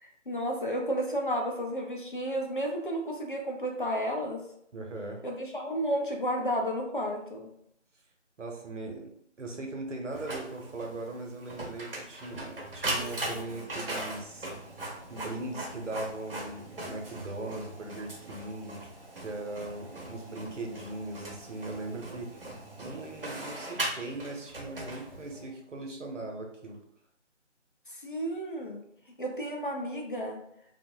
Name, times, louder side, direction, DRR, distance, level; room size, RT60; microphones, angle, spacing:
voice 1, 0.0-4.4 5.2-7.5 27.9-28.8 29.2-30.4, equal, 45° left, 0 dB, 0.5 m, -32 dB
voice 2, 4.7-5.2 8.4-9.1 9.4-14.5 15.1-18.9 19.2-22.3 22.8-26.8, right 2 dB, 80° right, 2 dB, 0.8 m, -39 dB
Printer, 10.1-25.5, right 1 dB, 50° right, 0.7 m, -39 dB
2.7 x 2.1 x 2.6 m, 0.72 s
figure-of-eight pair, 165°, 37 cm